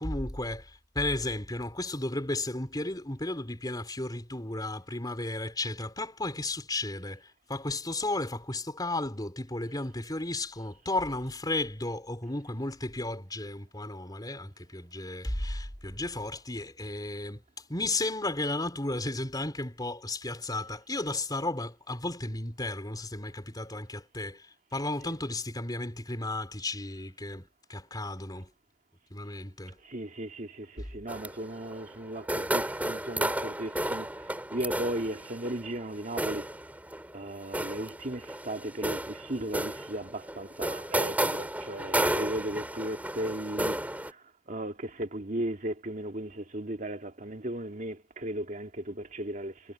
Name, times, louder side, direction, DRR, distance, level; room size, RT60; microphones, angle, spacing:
voice 1, 0.0-17.4 17.7-28.5 29.1-29.8 30.8-30.9, left 2 dB, 20° left, 4.1 m, -34 dB
voice 2, 29.8-34.1 34.5-36.5 37.1-43.8 44.0-44.2 44.5-49.5, right 1 dB, 45° right, 2.3 m, -36 dB
sound 1, 31.1-44.1, right 1 dB, 10° right, 3.6 m, -33 dB
head